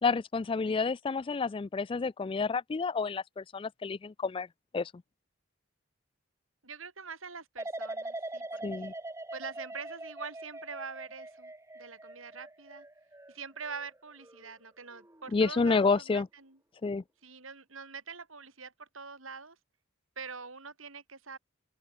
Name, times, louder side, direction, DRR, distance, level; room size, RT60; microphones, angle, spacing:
voice 1, 0.0-4.5 4.7-4.9 8.6-8.9 15.3-16.3 16.8-17.0, left 4 dB, 25° left, 0.3 m, -29 dB
voice 2, 6.6-8.9 9.3-12.9 13.3-16.6 17.2-19.6 20.2-21.4, right 5 dB, 85° right, 6.4 m, -44 dB
sound 1, 7.6-14.5 14.9-15.4, right 2 dB, 15° right, 2.7 m, -43 dB
open air
head